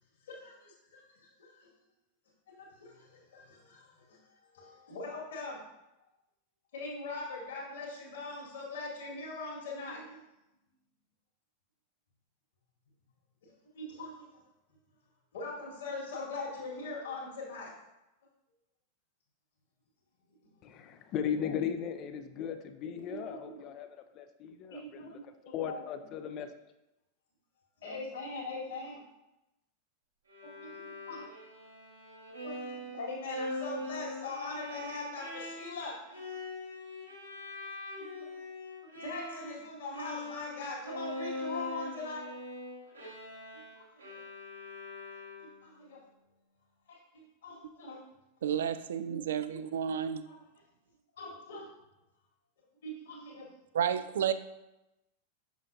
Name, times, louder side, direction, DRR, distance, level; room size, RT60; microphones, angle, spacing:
voice 1, 0.3-1.7 2.5-4.2 4.5-5.6 6.7-10.2 13.4-14.3 15.3-17.7 20.7-20.8 23.1-23.6 24.7-25.8 27.8-29.0 30.4-31.2 32.4-36.0 36.3-36.4 38.0-38.3 38.9-42.3 43.5-44.2 45.4-46.0 46.9-48.0 49.1-49.2 49.5-49.6 50.2-50.3 51.2-51.7 52.8-53.5, left 3 dB, 60° left, -2 dB, 1.9 m, -42 dB
voice 2, 20.6-26.5, left 8 dB, 35° left, 9 dB, 0.5 m, -37 dB
Bowed string instrument, 30.3-39.7 39.9-45.7, left 1 dB, 80° right, 1.8 m, -42 dB
voice 3, 48.4-50.3 53.7-54.3, right 8 dB, 60° right, 12 dB, 0.3 m, -31 dB
6.3 x 6.2 x 2.7 m, 0.93 s
figure-of-eight pair, 90°, 0 cm